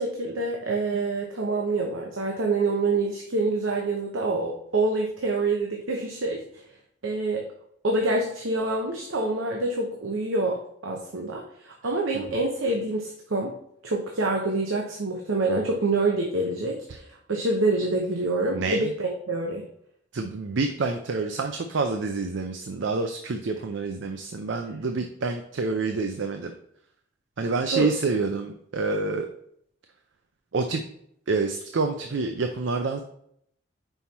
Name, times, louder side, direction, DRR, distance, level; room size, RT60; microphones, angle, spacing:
voice 1, 0.0-6.6 7.0-7.4 7.8-13.5 13.8-19.7 27.7-27.9, right 2 dB, 90° right, 0 dB, 0.9 m, -26 dB
voice 2, 18.5-18.9 20.1-26.5 27.4-29.3 30.5-30.8 31.3-33.0, right 3 dB, 70° right, 6 dB, 0.5 m, -27 dB
5.6 x 4.5 x 4.1 m, 0.70 s
head